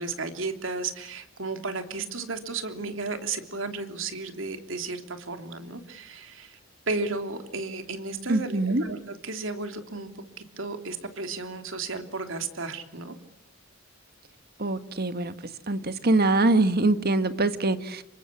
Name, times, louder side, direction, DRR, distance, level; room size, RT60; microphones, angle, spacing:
voice 1, 0.0-6.6 6.9-10.1 10.6-13.1, right 3 dB, 70° right, 3.2 m, -33 dB
voice 2, 8.3-8.8 14.6-15.3 15.7-18.0, right 2 dB, 50° right, 1.6 m, -23 dB
27.5 x 24.0 x 8.5 m
head